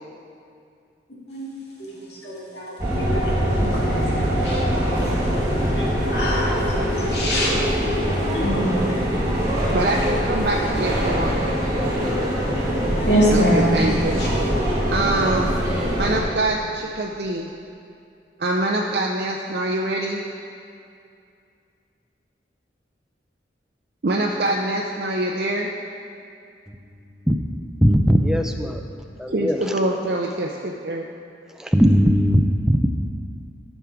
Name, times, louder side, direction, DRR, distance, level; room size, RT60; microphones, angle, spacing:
voice 1, 1.9-5.5 5.7-7.8 8.2-9.8 10.3-10.7 13.0-13.9 14.2-14.3, equal, 70° left, -5 dB, 2.3 m, -26 dB
sound 1, 2.8-16.2, equal, 20° right, 2.2 m, -23 dB
voice 2, 9.7-11.4 13.3-14.2 14.9-15.6 16.0-17.5 18.4-20.2 24.0-25.7 29.3-31.1, right 1 dB, 60° right, 0 dB, 0.6 m, -24 dB
voice 3, 27.8-28.8 29.2-29.7 31.6-32.9, equal, 5° right, 4 dB, 0.5 m, -18 dB
13.0 x 6.2 x 4.6 m, 2.4 s
head